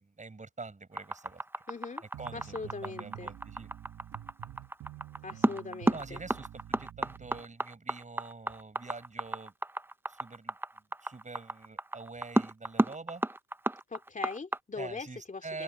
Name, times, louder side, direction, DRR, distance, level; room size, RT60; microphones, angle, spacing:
voice 1, 0.0-1.4 2.2-3.7 5.9-9.5 10.1-10.5 11.0-13.2 14.8-15.6, right 3 dB, 25° right, 7.4 m, -45 dB
sound 1, 0.9-14.6, right 1 dB, 5° right, 0.7 m, -31 dB
voice 2, 1.7-2.0 2.3-3.3 5.2-6.2 13.9-15.6, left 4 dB, 25° left, 3.2 m, -40 dB
sound 2, 2.1-7.5, right 12 dB, 70° right, 2.0 m, -48 dB
cardioid pair, 90°, 30 cm